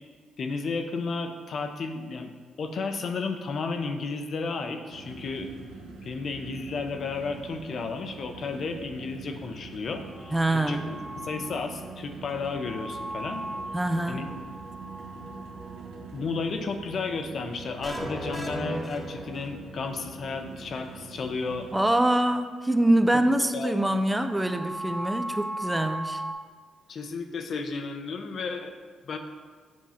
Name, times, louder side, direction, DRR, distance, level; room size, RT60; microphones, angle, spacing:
voice 1, 0.4-2.3 2.6-5.5 6.0-13.4 14.1-14.3 15.6-15.7 16.1-21.7 23.1-23.2 23.5-23.8 26.9-28.7 29.0-29.2, left 4 dB, 60° left, 6 dB, 0.7 m, -33 dB
sound 1, 4.9-21.9, right 4 dB, 90° right, 1.0 m, -44 dB
sound 2, 9.9-26.3, right 1 dB, 35° right, 1.7 m, -41 dB
voice 2, 10.3-10.8 13.7-14.2 21.7-26.2, right 1 dB, 10° right, 8 dB, 0.5 m, -24 dB
sound 3, 17.8-19.8, equal, 5° left, 1.4 m, -35 dB
7.5 x 3.8 x 5.6 m, 1.5 s
supercardioid pair, 65°, 0 cm